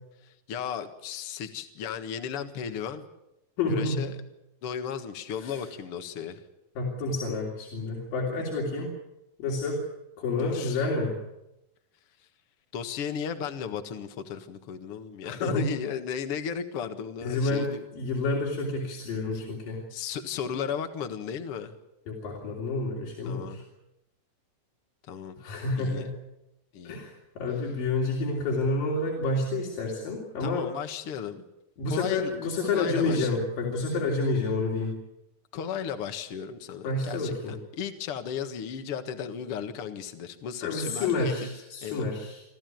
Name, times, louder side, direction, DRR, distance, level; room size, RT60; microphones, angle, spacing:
voice 1, 0.2-3.1 3.7-4.2 4.6-6.4 10.4-10.8 12.7-17.8 19.3-19.4 19.9-21.8 23.3-23.6 25.1-25.4 25.8-26.1 26.7-27.0 30.4-31.4 31.9-32.3 32.7-33.5 35.5-41.5 41.8-42.1, left 7 dB, 50° left, 7 dB, 2.1 m, -35 dB
voice 2, 3.6-4.1 5.4-5.6 6.8-8.9 9.4-9.8 10.2-11.2 15.2-15.7 17.2-17.7 17.9-19.8 22.1-23.6 25.4-26.1 26.8-30.6 31.8-34.9 36.8-37.5 40.6-42.5, left 3 dB, 90° left, -2 dB, 4.9 m, -29 dB
26.5 x 14.5 x 9.3 m, 0.91 s
omnidirectional pair, 3.9 m